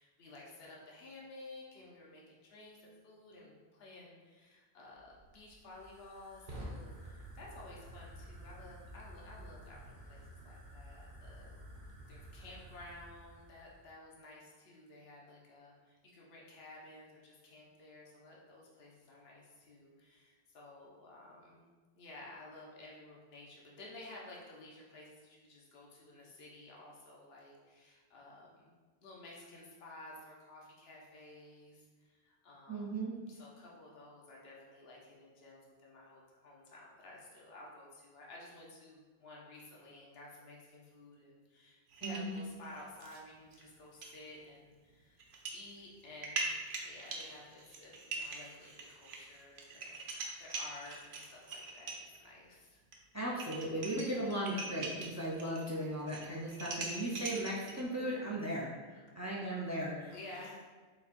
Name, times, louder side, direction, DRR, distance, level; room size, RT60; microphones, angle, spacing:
voice 1, 0.0-11.6 12.1-21.7 21.9-45.2 45.5-46.6 46.8-52.8 60.1-60.6, left 2 dB, 75° left, -3 dB, 1.1 m, -53 dB
Fire, 4.9-13.9, right 1 dB, 50° right, 1.0 m, -51 dB
voice 2, 32.7-33.1 42.0-42.4 53.1-60.2, right 1 dB, 25° right, -5 dB, 0.4 m, -37 dB
sound 1, 41.9-43.2 43.5-43.6 44.0-44.2 45.2-45.6 46.0-52.2 52.9-53.0 53.3-55.7 55.9-57.8, right 3 dB, 90° right, 0.9 m, -42 dB
4.2 x 4.0 x 2.5 m, 1.4 s
omnidirectional pair, 1.0 m